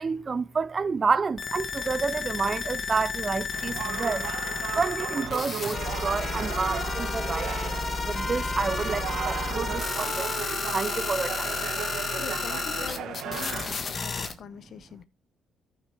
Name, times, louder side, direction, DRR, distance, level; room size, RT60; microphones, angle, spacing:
voice 1, 0.0-4.3 4.7-10.4 10.7-11.5, right 5 dB, 35° right, 0.5 m, -29 dB
sound 1, 1.4-14.3, left 4 dB, 45° left, 1.5 m, -32 dB
sound 2, 3.5-13.7, right 9 dB, 80° right, 1.1 m, -36 dB
Trumpet, 5.6-12.4, equal, 5° left, 2.0 m, -38 dB
voice 2, 12.2-15.0, left 8 dB, 65° left, 0.8 m, -43 dB
14.0 x 5.9 x 3.4 m
cardioid pair, 90°, 0 cm